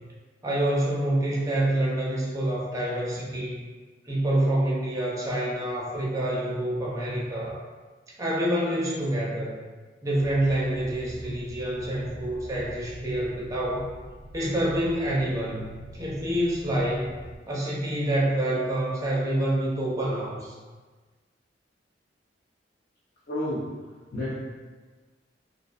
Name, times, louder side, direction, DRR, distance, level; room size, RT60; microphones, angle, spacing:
voice 1, 0.4-3.6 4.0-7.6 8.2-9.5 10.0-13.9 14.3-17.1 17.5-20.6, right 1 dB, 20° right, -5 dB, 0.4 m, -27 dB
sound 1, 10.2-17.4, right 1 dB, 90° right, 0.5 m, -45 dB
voice 2, 23.3-23.6 24.1-24.3, left 1 dB, 55° left, -8 dB, 0.5 m, -29 dB
2.5 x 2.1 x 2.4 m, 1.4 s
head